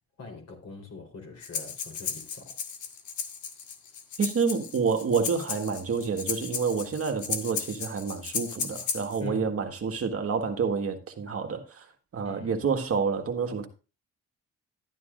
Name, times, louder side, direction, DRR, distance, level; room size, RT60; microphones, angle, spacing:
voice 1, 0.2-2.6 9.2-9.5 12.2-12.6, left 4 dB, 55° left, 4.1 m, -42 dB
Breathing, 1.4-9.2, left 6 dB, 75° left, 1.7 m, -35 dB
voice 2, 4.2-11.9 12.1-13.7, right 5 dB, 50° right, 1.7 m, -28 dB
13.0 x 9.5 x 2.6 m
cardioid pair, 90°, 30 cm